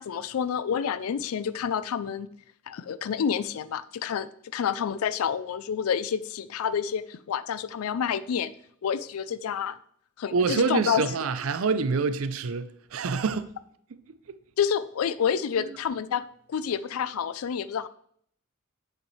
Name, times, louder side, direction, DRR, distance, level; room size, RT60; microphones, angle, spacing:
voice 1, 0.0-2.3 2.7-8.5 8.8-9.7 10.2-11.0 14.6-16.2 16.5-17.9, left 7 dB, 80° left, 0.4 m, -28 dB
voice 2, 10.3-13.6 14.1-14.2, right 4 dB, 70° right, 0.5 m, -26 dB
8.2 x 6.7 x 3.1 m
head